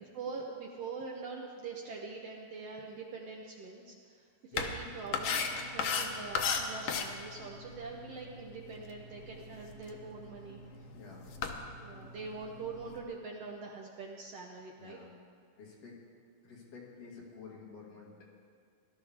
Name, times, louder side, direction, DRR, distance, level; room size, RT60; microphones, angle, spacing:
voice 1, 0.1-10.6 11.8-15.0, right 4 dB, 70° right, -1 dB, 1.5 m, -44 dB
sound 1, 4.5-13.0, left 5 dB, 85° left, 1.3 m, -38 dB
voice 2, 10.9-11.3 14.8-15.1 15.6-16.0 16.4-18.3, left 5 dB, 50° left, -4 dB, 3.2 m, -50 dB
18.5 x 12.5 x 3.6 m, 2.3 s
omnidirectional pair, 3.9 m